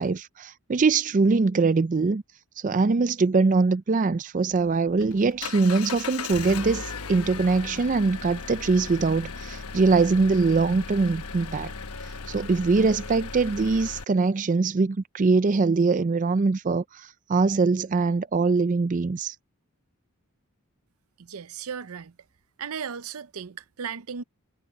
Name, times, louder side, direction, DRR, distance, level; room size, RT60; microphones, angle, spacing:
voice 1, 0.0-2.2 2.6-11.7 12.3-19.4, right 4 dB, 35° right, 0.4 m, -23 dB
Engine, 4.5-14.0, left 5 dB, 85° left, 1.1 m, -37 dB
voice 2, 21.2-22.1 22.6-24.2, right 7 dB, 75° right, 0.6 m, -36 dB
head